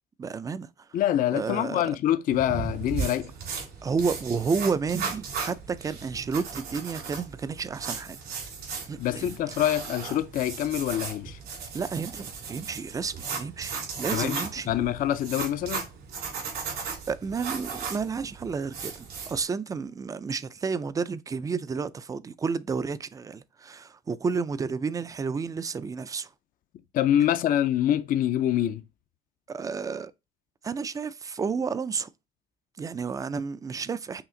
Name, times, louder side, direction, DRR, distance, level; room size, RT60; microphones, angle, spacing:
voice 1, 0.2-0.9 1.3-1.8 3.8-8.2 8.9-9.3 11.7-14.7 17.1-26.3 29.5-30.1 30.6-32.1 32.8-34.2, right 5 dB, 20° right, 0.3 m, -31 dB
voice 2, 0.9-3.3 9.0-11.4 14.1-15.9 26.9-28.8, left 11 dB, 55° left, 0.4 m, -25 dB
sound 1, 2.3-19.4, right 5 dB, 75° right, 2.7 m, -36 dB
5.7 x 2.4 x 3.7 m
cardioid pair, 110°, 17 cm